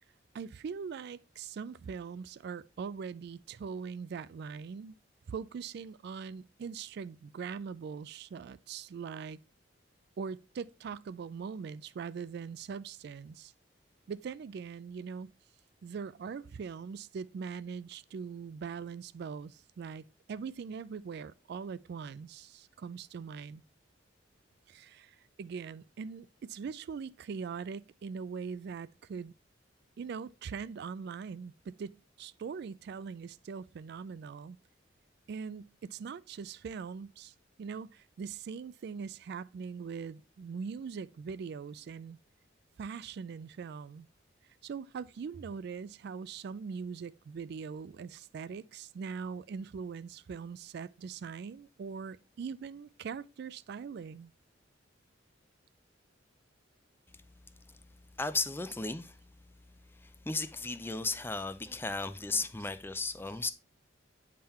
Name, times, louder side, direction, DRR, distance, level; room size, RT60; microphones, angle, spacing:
voice 1, 0.3-4.9 5.3-9.4 10.2-13.5 14.1-15.3 15.8-23.6 24.7-29.3 30.0-34.6 35.3-42.2 42.8-44.1 44.6-54.3, right 6 dB, 60° right, 0.3 m, -41 dB
voice 2, 58.2-59.2 59.9-63.5, left 3 dB, 10° left, 0.4 m, -35 dB
8.7 x 3.8 x 4.2 m
head